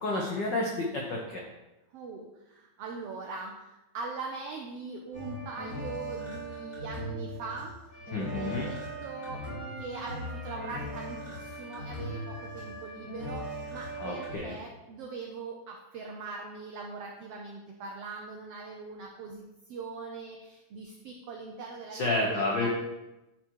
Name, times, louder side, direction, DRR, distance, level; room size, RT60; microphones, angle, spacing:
voice 1, 0.0-1.4 8.1-8.7 14.0-14.6 21.9-22.7, left 2 dB, 85° left, -1 dB, 0.9 m, -30 dB
voice 2, 1.9-7.7 8.2-9.4 9.8-22.7, right 4 dB, 75° right, 0 dB, 1.5 m, -41 dB
sound 1, 5.1-14.3, right 1 dB, 25° left, 3.2 m, -39 dB
10.5 x 4.5 x 4.6 m, 1.0 s
omnidirectional pair, 3.5 m